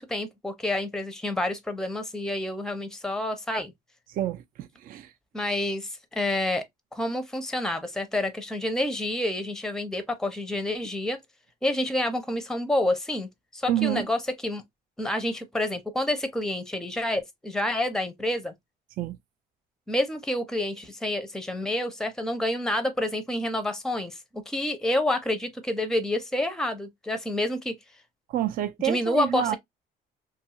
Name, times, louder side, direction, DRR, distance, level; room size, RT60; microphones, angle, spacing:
voice 1, 0.0-3.7 5.3-6.6 6.9-11.2 11.6-14.6 15.0-18.5 19.9-27.7 28.8-29.6, left 1 dB, 5° left, 0.5 m, -28 dB
voice 2, 4.1-5.1 13.7-14.1 19.0-19.2 28.3-29.6, right 12 dB, 55° right, 0.4 m, -28 dB
2.7 x 2.3 x 2.7 m
cardioid pair, 110°, 17 cm